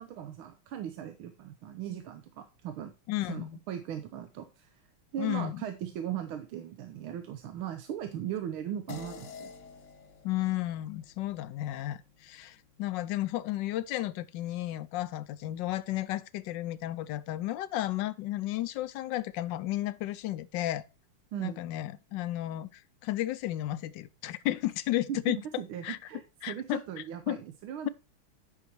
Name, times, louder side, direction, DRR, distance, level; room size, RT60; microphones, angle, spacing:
voice 1, 0.0-2.9 3.2-4.8 5.1-9.5 21.3-21.6 25.1-27.9, right 10 dB, 85° right, 1.7 m, -38 dB
voice 2, 3.1-3.6 5.2-5.6 10.2-20.8 21.4-25.4 25.8-26.0 26.4-26.8 27.3-27.4, left 14 dB, 70° left, 1.2 m, -33 dB
sound 1, 8.9-13.6, left 7 dB, 55° left, 0.8 m, -50 dB
9.9 x 5.8 x 4.5 m
omnidirectional pair, 2.3 m